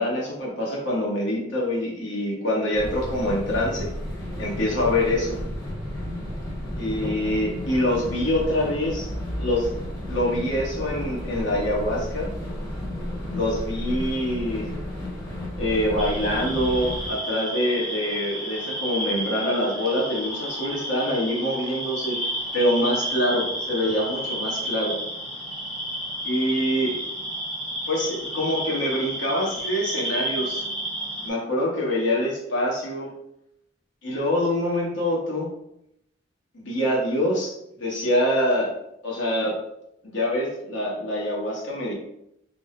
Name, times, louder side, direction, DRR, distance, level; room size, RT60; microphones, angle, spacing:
voice 1, 0.0-3.9 4.4-5.4 6.8-9.1 9.4-9.7 10.1-12.3 13.3-14.7 15.6-22.2 22.5-25.0 26.2-27.0 27.9-30.7 31.2-33.1 34.0-35.5 36.5-38.7 39.0-39.6 40.0-41.9, left 1 dB, 70° left, -4 dB, 1.2 m, -25 dB
sound 1, 2.7-17.1, left 1 dB, 20° left, 1.0 m, -32 dB
sound 2, 16.0-31.3, right 1 dB, 5° left, 0.7 m, -31 dB
3.6 x 2.1 x 3.7 m, 0.79 s
head